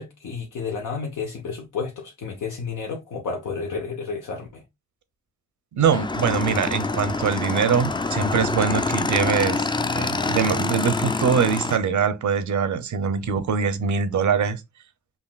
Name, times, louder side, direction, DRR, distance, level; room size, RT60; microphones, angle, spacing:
voice 1, 0.0-4.6, left 5 dB, 85° left, 0.8 m, -31 dB
voice 2, 5.7-9.7 9.9-14.6, right 6 dB, 70° right, 0.7 m, -23 dB
Motorcycle / Engine, 5.9-11.8, left 3 dB, 15° left, 0.3 m, -26 dB
5.6 x 2.5 x 2.3 m
cardioid pair, 65°, 30 cm